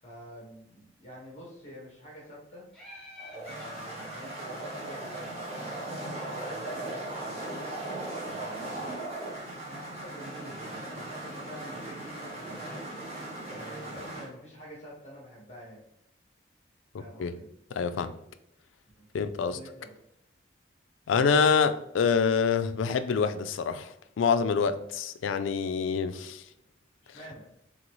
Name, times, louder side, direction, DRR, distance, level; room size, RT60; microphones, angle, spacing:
voice 1, 0.0-2.7 3.3-7.5 8.2-9.0 9.6-12.9 13.4-15.8 17.0-17.5 18.0-18.1 18.9-19.0 19.4-20.0 27.0-27.5, equal, 35° left, 1.5 m, -48 dB
Laughter, 2.7-6.4, left 2 dB, 5° left, 1.1 m, -51 dB
sound 1, 3.2-14.3, right 2 dB, 30° right, 1.4 m, -38 dB
voice 2, 17.8-18.1 19.1-19.6 21.1-26.4, left 6 dB, 85° left, 0.3 m, -26 dB
3.9 x 3.8 x 3.1 m
head